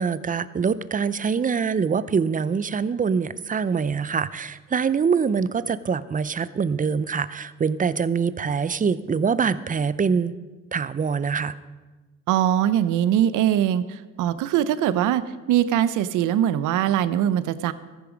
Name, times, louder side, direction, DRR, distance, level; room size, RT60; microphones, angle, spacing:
voice 1, 0.0-10.3 10.7-11.5, right 6 dB, 25° right, 16 dB, 0.5 m, -24 dB
voice 2, 12.3-13.8 14.2-15.2 15.5-17.7, right 11 dB, 90° right, 14 dB, 0.7 m, -21 dB
14.0 x 10.0 x 5.1 m, 1.2 s
cardioid pair, 90°, 30 cm